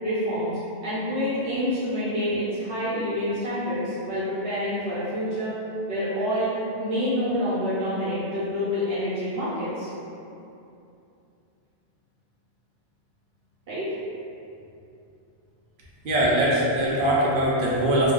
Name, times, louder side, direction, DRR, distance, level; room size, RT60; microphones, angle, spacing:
voice 1, 0.0-5.6 5.9-6.5 6.8-9.9 13.7-13.9, equal, 85° right, -11 dB, 1.0 m, -27 dB
voice 2, 16.0-18.1, right 1 dB, 60° right, -5 dB, 0.7 m, -22 dB
2.2 x 2.2 x 3.5 m, 2.7 s
omnidirectional pair, 1.1 m